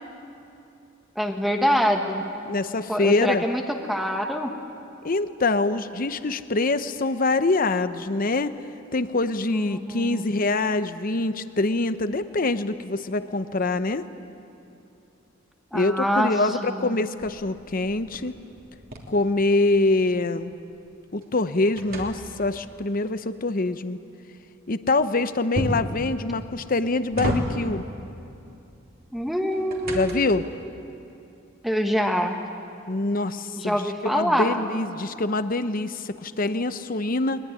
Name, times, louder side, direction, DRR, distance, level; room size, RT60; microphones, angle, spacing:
voice 1, 1.1-2.2 2.9-4.5 9.5-10.3 15.7-16.3 16.6-17.0 29.1-30.3 31.6-32.3 33.6-34.6, equal, ahead, 3 dB, 1.4 m, -25 dB
voice 2, 2.4-3.4 5.0-8.5 8.9-14.0 15.7-18.3 19.1-20.5 21.1-24.0 24.7-27.8 29.9-30.4 32.9-37.4, left 2 dB, 45° left, 11 dB, 0.8 m, -25 dB
sound 1, 17.2-20.1 20.5-22.7 25.5-26.0 26.7-27.9 29.2-30.5, equal, 50° right, 3.1 m, -32 dB
21.5 x 21.0 x 9.8 m, 2.7 s
head